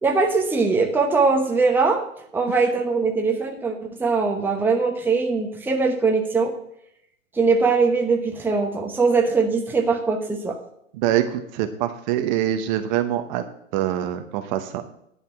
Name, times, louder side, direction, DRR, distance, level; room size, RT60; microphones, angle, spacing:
voice 1, 0.0-2.0 2.3-6.5 7.3-10.6, right 4 dB, 5° right, 2 dB, 1.0 m, -21 dB
voice 2, 10.9-13.4 13.7-14.8, right 12 dB, 35° right, 8 dB, 0.9 m, -24 dB
10.5 x 5.4 x 7.4 m, 0.74 s
hypercardioid pair, 120°, 39 cm